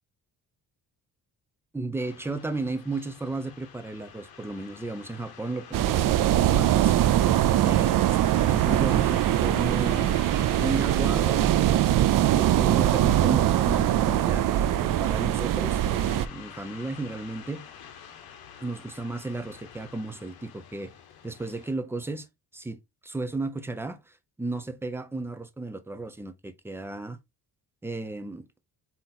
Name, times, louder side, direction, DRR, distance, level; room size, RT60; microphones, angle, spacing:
voice 1, 1.7-6.9 7.6-8.1 8.4-10.2 10.6-11.6 12.3-17.6 18.6-20.9 21.2-22.3 22.5-27.2 27.8-28.5, right 2 dB, 5° right, 0.6 m, -34 dB
sound 1, 2.0-21.7, left 8 dB, 70° left, 1.6 m, -48 dB
sound 2, 5.7-16.3, right 12 dB, 60° right, 0.5 m, -22 dB
7.9 x 2.9 x 4.1 m
cardioid pair, 175°, 38 cm